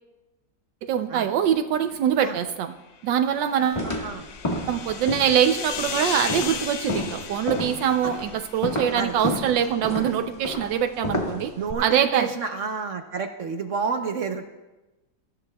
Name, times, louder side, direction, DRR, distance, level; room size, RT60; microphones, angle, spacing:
voice 1, 0.8-2.7 3.0-3.9 4.7-11.5 11.8-12.3, right 9 dB, 80° right, 8 dB, 1.3 m, -23 dB
sound 1, 3.3-8.9, left 6 dB, 85° left, 1.7 m, -35 dB
voice 2, 3.6-4.3 8.0-8.1 8.9-9.1 11.6-14.5, right 5 dB, 55° right, 6 dB, 0.9 m, -30 dB
sound 2, 3.7-11.7, left 1 dB, 20° left, 1.3 m, -31 dB
22.5 x 14.0 x 2.3 m, 1.1 s
omnidirectional pair, 2.0 m